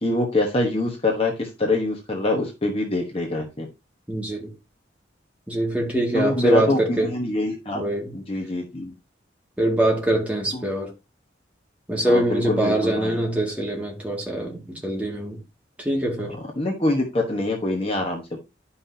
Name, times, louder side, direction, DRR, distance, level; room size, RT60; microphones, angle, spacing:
voice 1, 0.0-3.7 6.1-7.8 8.1-8.9 10.5-10.6 12.0-13.2 16.6-18.4, left 2 dB, 30° left, 1.1 m, -25 dB
voice 2, 4.1-4.5 5.5-7.1 7.7-8.1 9.6-10.9 11.9-15.4 15.8-16.4, right 1 dB, 5° right, 2.0 m, -23 dB
10.5 x 5.7 x 2.7 m
head